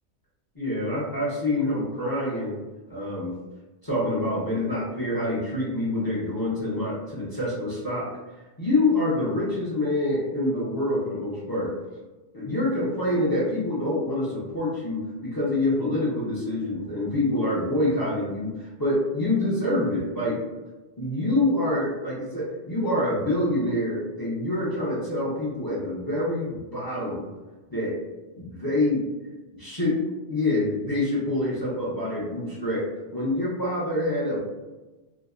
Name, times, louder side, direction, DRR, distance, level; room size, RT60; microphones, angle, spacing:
voice 1, 0.6-2.5 2.9-3.3 3.8-8.1 8.6-11.7 12.3-20.4 21.0-27.2 27.7-28.0 28.4-29.0 29.6-29.9 30.3-32.9 33.1-34.4, left 1 dB, 30° left, -7 dB, 0.4 m, -26 dB
2.7 x 2.1 x 2.4 m, 1.2 s
omnidirectional pair, 1.2 m